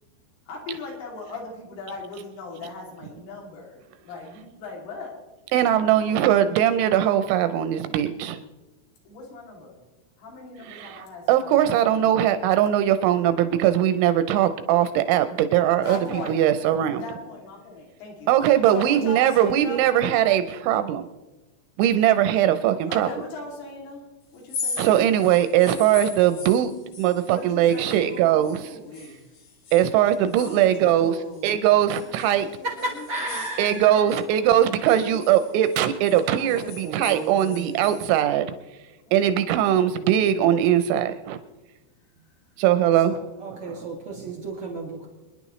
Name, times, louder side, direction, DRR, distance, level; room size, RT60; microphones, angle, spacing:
voice 1, 0.5-5.1 5.8-6.5 9.1-9.8 10.2-11.9 15.7-16.4 16.9-18.3 18.7-19.9 22.9-24.0 24.3-25.1 27.2-29.2 30.4-31.6 32.0-35.4 36.3-37.7 39.1-39.8, left 2 dB, 75° left, -2 dB, 5.2 m, -39 dB
voice 2, 5.5-8.4 10.7-17.0 18.3-21.1 21.8-23.1 24.8-26.7 27.0-28.8 29.7-31.2 31.4-32.5 33.6-38.5 39.1-41.4 42.6-43.2 43.7-43.8, right 11 dB, 85° right, 10 dB, 2.7 m, -20 dB
sound 1, 24.4-28.6 28.9-31.5 31.9-34.2 34.6-38.1, left 4 dB, 50° left, 4.2 m, -39 dB
voice 3, 32.8-34.1 36.5-37.9 43.0-45.1, right 2 dB, 50° right, -1 dB, 1.6 m, -34 dB
27.0 x 10.5 x 3.1 m, 1.1 s
omnidirectional pair, 5.9 m